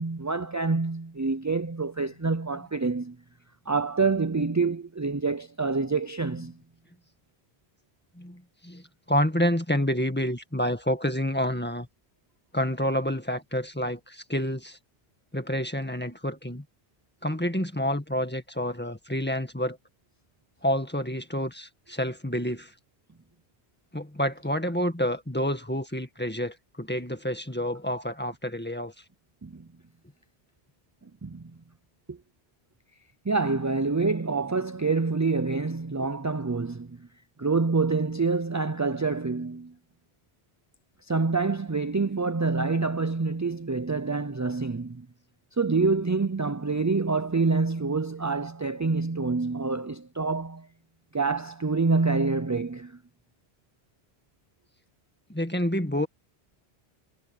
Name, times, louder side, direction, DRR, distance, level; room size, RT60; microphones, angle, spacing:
voice 1, 0.0-3.2 3.7-6.6 29.4-29.7 31.2-31.5 32.1-32.2 33.3-37.1 37.4-39.7 41.1-45.1 45.6-50.7 51.1-53.0, right 4 dB, 25° right, 0.4 m, -27 dB
voice 2, 8.2-11.9 12.5-14.8 15.3-16.6 17.2-19.8 20.6-22.7 23.9-28.9 55.3-56.1, equal, 10° left, 1.8 m, -28 dB
omnidirectional pair, 1.1 m